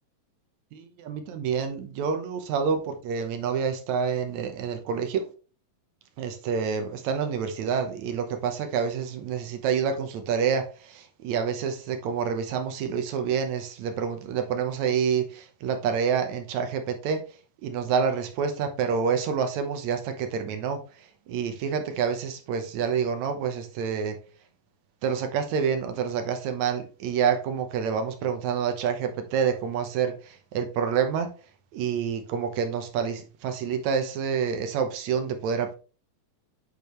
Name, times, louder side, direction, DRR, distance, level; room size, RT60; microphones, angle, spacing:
voice 1, 0.7-5.3 6.2-10.6 10.9-17.2 17.6-20.8 21.3-24.2 25.0-30.2 30.5-31.3 31.7-35.7, right 6 dB, 65° right, 2.0 m, -27 dB
8.6 x 5.0 x 3.1 m
omnidirectional pair, 4.0 m